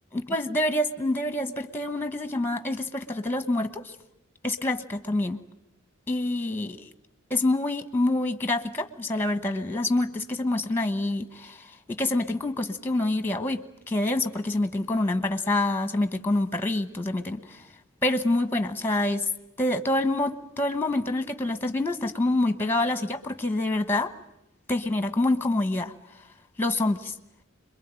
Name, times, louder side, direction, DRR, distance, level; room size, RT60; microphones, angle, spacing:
voice 1, 0.1-3.9 4.4-5.4 6.1-6.9 7.3-17.6 18.0-19.3 19.6-24.1 24.7-25.9 26.6-27.1, left 2 dB, 10° left, 10 dB, 1.1 m, -26 dB
26.5 x 22.5 x 8.9 m, 0.82 s
head